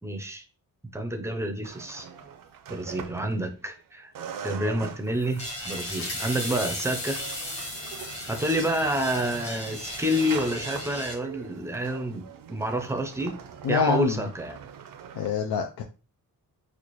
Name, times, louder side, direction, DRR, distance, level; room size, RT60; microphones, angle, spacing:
voice 1, 0.0-0.4 0.9-2.1 2.7-4.1 4.4-7.2 7.6-7.7 8.3-13.4 13.7-14.6, equal, 10° right, 5 dB, 0.5 m, -29 dB
sound 1, 1.6-3.8 4.2-15.3, right 7 dB, 65° right, 0.5 m, -43 dB
sound 2, 5.1-10.6, left 2 dB, 70° left, 1.7 m, -39 dB
sound 3, 5.4-11.1, equal, 40° left, 1.4 m, -38 dB
voice 2, 13.6-14.2 15.2-15.8, left 6 dB, 90° left, 3 dB, 0.6 m, -25 dB
4.2 x 2.4 x 3.0 m, 0.33 s
wide cardioid pair, 160°, 36 cm